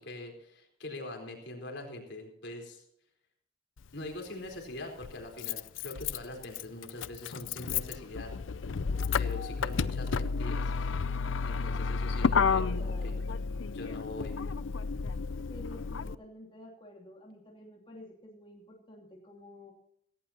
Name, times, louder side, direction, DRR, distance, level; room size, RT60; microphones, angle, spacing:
voice 1, 0.0-2.8 3.9-8.3 9.1-11.0 11.4-13.2 13.7-14.4, left 2 dB, 70° left, 3 dB, 4.2 m, -43 dB
Motor vehicle (road), 3.8-3.9 5.0-16.2, left 5 dB, 90° left, 0.5 m, -31 dB
voice 2, 8.9-9.4 12.3-13.2 15.5-19.7, left 1 dB, 25° left, -2 dB, 2.9 m, -50 dB
17.5 x 17.0 x 2.9 m, 0.74 s
head